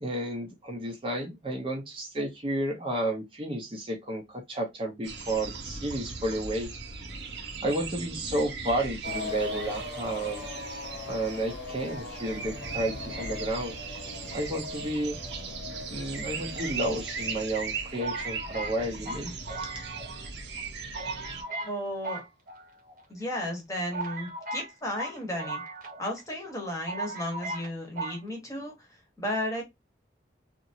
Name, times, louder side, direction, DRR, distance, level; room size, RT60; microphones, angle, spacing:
voice 1, 0.0-6.7 7.6-10.4 11.1-13.8 14.3-15.2 15.9-19.3, right 1 dB, 30° right, 0.7 m, -31 dB
sound 1, 5.0-21.4, right 5 dB, 70° right, 0.9 m, -38 dB
sound 2, 9.0-20.6, left 3 dB, 70° left, 0.8 m, -42 dB
sound 3, 16.5-17.3 18.0-20.3 20.6-20.7 20.9-21.8 22.0-23.0 23.5-23.6 23.9-26.2 26.5-26.6 26.9-27.7 28.0-28.2, right 2 dB, 45° right, 1.0 m, -37 dB
voice 2, 21.6-22.2 23.1-25.6 26.0-28.7 29.2-29.6, left 1 dB, 15° left, 1.1 m, -34 dB
2.9 x 2.6 x 2.6 m
head